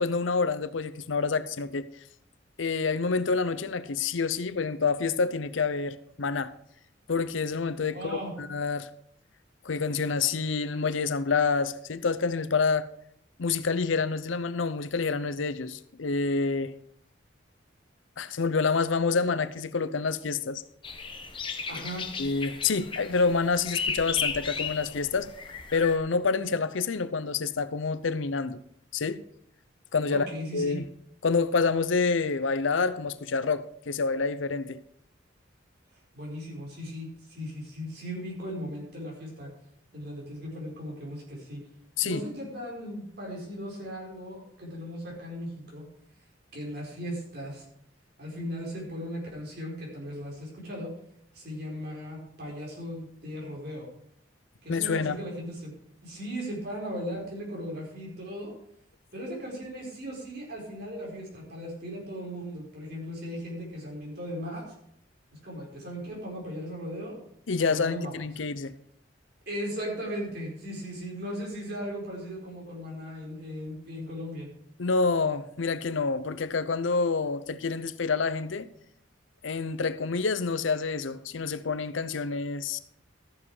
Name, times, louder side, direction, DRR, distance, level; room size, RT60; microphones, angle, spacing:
voice 1, 0.0-1.9 2.6-6.5 7.1-8.0 8.4-8.9 9.6-12.9 13.4-16.7 18.2-20.6 22.2-25.3 25.7-28.6 28.9-29.2 29.9-30.3 30.5-30.9 31.2-34.8 42.0-42.2 54.7-55.2 67.5-68.7 74.8-78.7 79.4-82.8, left 4 dB, 85° left, 0.7 m, -27 dB
voice 2, 7.8-8.3 21.7-22.0 30.1-30.8 36.1-39.5 39.9-41.6 42.0-45.8 46.5-47.6 48.2-50.9 51.3-53.9 54.6-55.7 56.0-58.5 59.1-64.7 65.4-67.2 67.6-68.1 69.5-74.5, equal, 55° right, 4.8 m, -37 dB
sound 1, 20.8-25.9, left 5 dB, 25° left, 1.0 m, -35 dB
13.5 x 7.3 x 4.9 m
head